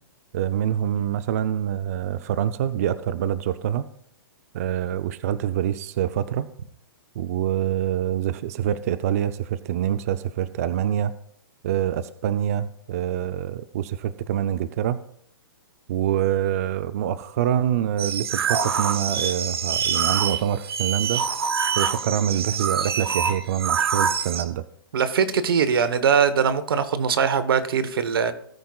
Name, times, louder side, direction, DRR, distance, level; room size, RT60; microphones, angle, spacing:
voice 1, 0.3-3.8 4.5-6.5 7.2-11.1 11.6-15.0 15.9-21.3 21.7-24.6, right 10 dB, 40° right, 0.5 m, -25 dB
sound 1, 18.0-24.4, right 7 dB, 85° right, 1.2 m, -25 dB
voice 2, 24.9-28.3, right 6 dB, 70° right, 1.1 m, -21 dB
18.5 x 9.3 x 2.4 m
hypercardioid pair, 160°, 13 cm